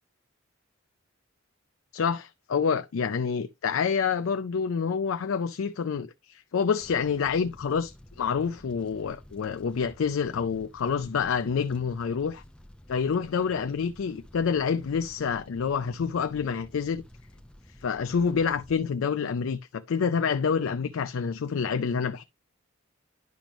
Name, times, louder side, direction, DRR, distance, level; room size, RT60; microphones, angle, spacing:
voice 1, 1.9-12.4 12.9-17.0 17.8-22.2, left 6 dB, 70° left, 0.4 m, -27 dB
Fire, 6.8-18.8, equal, 5° left, 0.6 m, -52 dB
10.5 x 5.1 x 3.0 m
head